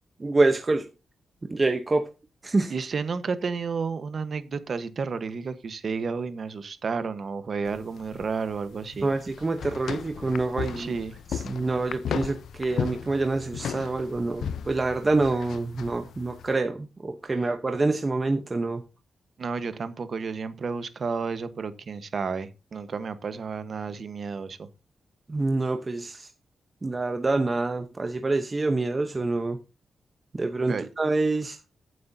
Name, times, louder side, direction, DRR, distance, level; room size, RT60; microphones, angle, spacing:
voice 1, 0.2-0.9 1.5-2.1 2.4-2.7 9.0-10.9 11.3-18.8 25.3-26.3 26.8-29.6 30.3-31.6, right 3 dB, 25° right, 0.9 m, -26 dB
voice 2, 2.7-9.1 10.8-11.1 19.4-24.7 30.7-30.9, right 5 dB, 45° right, 1.2 m, -31 dB
sound 1, 7.7-16.5, left 8 dB, 80° left, 0.6 m, -36 dB
15.0 x 7.8 x 2.7 m
wide cardioid pair, 140°, 0 cm